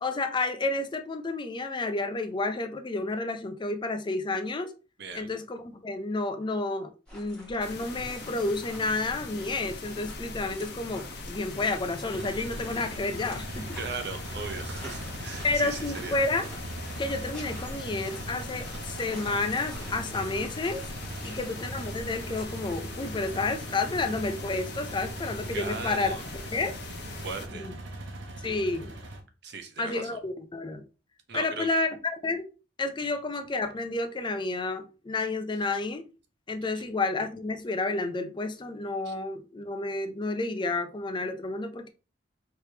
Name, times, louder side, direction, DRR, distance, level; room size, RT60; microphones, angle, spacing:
voice 1, 0.0-4.7 5.1-13.8 15.4-16.5 17.0-20.9 21.2-26.2 26.5-26.8 27.5-27.7 28.4-28.9 29.8-30.8 31.3-31.9 32.2-32.4 32.8-36.0 36.5-41.9, left 3 dB, 25° left, 0.4 m, -30 dB
voice 2, 5.0-5.3 13.8-16.2 21.2-21.4 25.5-26.2 27.2-27.7 29.4-30.2 31.3-31.7 36.7-36.9 39.0-39.1, right 4 dB, 65° right, 0.9 m, -38 dB
sound 1, 7.1-22.4, equal, 5° left, 1.4 m, -47 dB
sound 2, 7.6-27.5, left 3 dB, 65° left, 0.9 m, -42 dB
sound 3, 12.1-29.2, right 1 dB, 90° right, 1.0 m, -40 dB
4.6 x 3.2 x 2.8 m
head